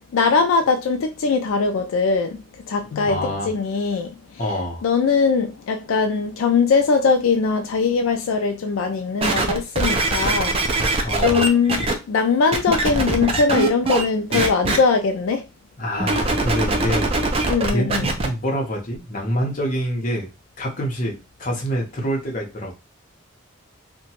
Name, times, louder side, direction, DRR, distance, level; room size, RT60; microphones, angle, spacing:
voice 1, 0.1-2.4 2.7-4.1 4.8-15.4 17.5-18.0, left 4 dB, 75° left, 0.3 m, -21 dB
voice 2, 3.1-3.5 4.4-4.8 11.0-11.5 13.2-13.3 15.8-17.2 17.7-20.3 20.6-22.7, equal, 40° left, 0.8 m, -26 dB
sound 1, 9.2-11.9 12.5-14.0 14.3-14.8 16.0-18.3 18.9-19.0, right 2 dB, 30° right, 0.4 m, -22 dB
2.8 x 2.2 x 2.8 m
head